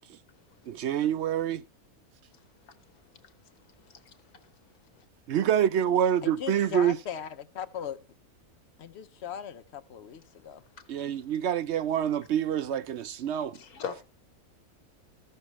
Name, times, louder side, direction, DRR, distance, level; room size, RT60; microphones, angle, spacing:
voice 1, 0.7-1.6 5.3-7.0 10.9-13.6, right 10 dB, 65° right, 0.7 m, -26 dB
voice 2, 3.8-4.5 4.9-5.0 10.8-10.9 13.5-14.0, left 6 dB, 80° left, 1.6 m, -41 dB
voice 3, 6.2-8.0 8.8-10.6, left 9 dB, 55° left, 0.9 m, -38 dB
14.0 x 6.7 x 3.1 m
omnidirectional pair, 1.5 m